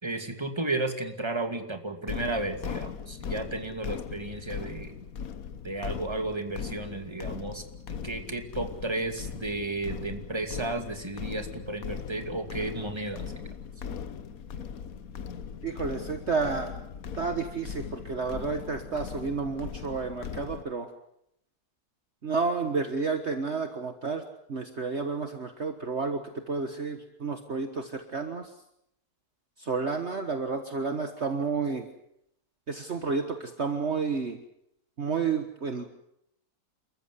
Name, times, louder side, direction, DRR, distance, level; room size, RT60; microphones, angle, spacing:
voice 1, 0.0-4.9 5.6-13.3, right 2 dB, 15° right, 5 dB, 2.5 m, -33 dB
sound 1, 2.1-20.6, left 7 dB, 65° left, 1.5 m, -39 dB
voice 2, 15.6-16.8 17.2-20.9 22.2-24.2 24.5-28.5 29.6-31.9 32.7-34.4 35.0-35.8, right 4 dB, 45° right, 6 dB, 1.7 m, -31 dB
28.5 x 14.5 x 9.6 m, 0.77 s
omnidirectional pair, 1.7 m